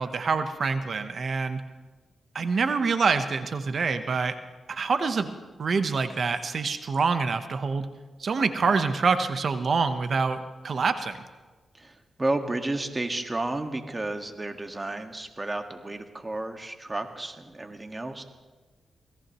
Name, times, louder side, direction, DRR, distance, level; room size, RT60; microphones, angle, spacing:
voice 1, 0.0-1.6 2.3-4.4 4.7-5.3 5.6-7.9 8.2-11.2, right 4 dB, 60° right, 9 dB, 1.0 m, -26 dB
voice 2, 11.7-18.2, right 2 dB, 25° right, 5 dB, 1.7 m, -32 dB
26.5 x 17.5 x 3.1 m, 1.3 s
cardioid pair, 65°, 0 cm